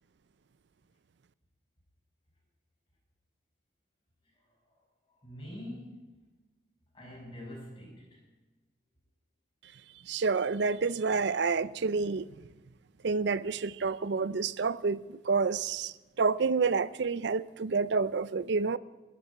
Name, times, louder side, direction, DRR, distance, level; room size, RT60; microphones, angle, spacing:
voice 1, 4.4-4.8 5.2-6.2 6.9-8.2, left 1 dB, 25° left, 5.8 m, -45 dB
voice 2, 10.1-12.2 13.0-15.0 15.3-18.8, right 4 dB, 60° right, 0.5 m, -28 dB
13.0 x 8.3 x 9.3 m
head